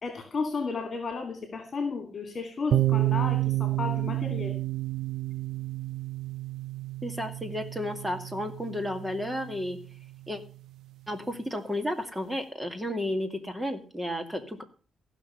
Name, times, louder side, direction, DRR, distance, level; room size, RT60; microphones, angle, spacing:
voice 1, 0.0-4.5, left 4 dB, 40° left, 5 dB, 2.7 m, -33 dB
sound 1, 2.7-10.4, right 15 dB, 85° right, 0.5 m, -30 dB
voice 2, 7.0-9.8 10.3-10.4 11.1-14.6, left 1 dB, 10° right, 6 dB, 2.2 m, -32 dB
15.0 x 6.1 x 7.0 m, 0.39 s
cardioid pair, 100°, 0 cm